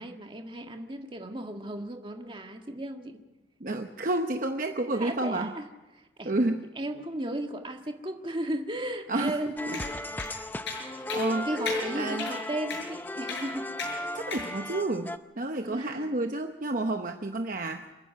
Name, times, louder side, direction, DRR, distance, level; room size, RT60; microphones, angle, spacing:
voice 1, 0.0-3.2 4.9-5.7 5.9-6.3 6.8-9.9 10.9-13.7 15.6-16.1, right 1 dB, 25° right, 4 dB, 1.7 m, -35 dB
voice 2, 3.6-5.5 6.2-6.6 9.1-9.4 9.7-9.8 10.9-11.7 11.9-12.3 14.1-17.9, right 2 dB, 45° right, 5 dB, 0.9 m, -30 dB
sound 1, 9.6-15.2, left 2 dB, 10° left, 0.6 m, -35 dB
sound 2, 9.7-9.9 10.2-10.3 10.7-10.8 11.1-11.3 11.7-11.8 12.2-12.4 12.7-12.8 13.3-13.5 13.8-13.9 14.3-14.5, left 4 dB, 75° left, 7.1 m, -35 dB
28.0 x 10.0 x 9.4 m, 1.1 s
head